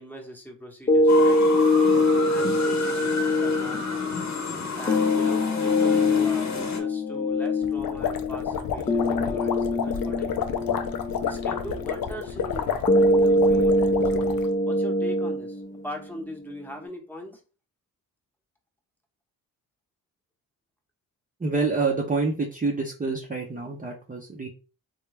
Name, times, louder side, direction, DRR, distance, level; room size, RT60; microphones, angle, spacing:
voice 1, 0.0-1.4 2.0-4.1 4.8-10.6 11.2-14.3 14.6-17.4, equal, 5° left, 1 dB, 0.9 m, -41 dB
sound 1, 0.9-16.9, left 2 dB, 20° left, 0.5 m, -24 dB
sound 2, 1.1-6.8, left 3 dB, 50° left, 0.9 m, -32 dB
sound 3, 7.6-14.5, left 8 dB, 70° left, 0.5 m, -30 dB
voice 2, 21.4-24.5, right 4 dB, 25° right, -1 dB, 0.6 m, -27 dB
3.2 x 2.3 x 3.2 m, 0.34 s
cardioid pair, 70°, 36 cm